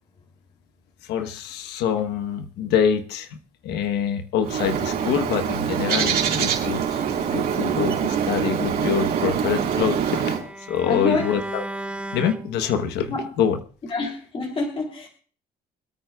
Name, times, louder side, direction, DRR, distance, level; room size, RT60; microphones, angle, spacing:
voice 1, 1.0-3.4 3.6-10.4 10.7-11.6 12.1-13.6, left 8 dB, 85° left, 8 dB, 1.2 m, -25 dB
Bird, 4.4-10.4, right 8 dB, 65° right, 4.1 m, -24 dB
Bowed string instrument, 8.9-13.1, right 2 dB, 5° right, 1.1 m, -36 dB
voice 2, 10.8-11.3 13.1-13.2 13.9-15.1, left 3 dB, 35° left, 1 dB, 3.0 m, -26 dB
26.5 x 9.0 x 2.4 m, 0.41 s
cardioid pair, 110°, 17 cm